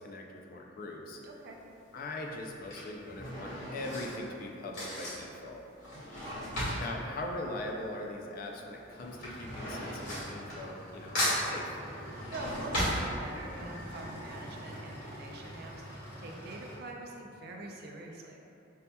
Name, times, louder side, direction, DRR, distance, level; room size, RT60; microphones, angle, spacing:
voice 1, 0.0-1.2 1.9-5.6 6.8-11.2 11.4-11.8, left 2 dB, 50° left, 0 dB, 0.4 m, -41 dB
Drawer open or close / Cutlery silverware, 1.1-1.5 2.4-8.3 8.5-10.9 11.1-13.7 14.1-14.2 14.4-14.5, equal, 75° left, 1.5 m, -36 dB
voice 2, 1.2-1.6 5.9-6.3 12.3-18.4, right 2 dB, 55° right, 0 dB, 0.4 m, -44 dB
sound 1, 8.9-16.8, equal, 10° right, 0.8 m, -46 dB
5.3 x 2.7 x 2.2 m, 2.8 s
head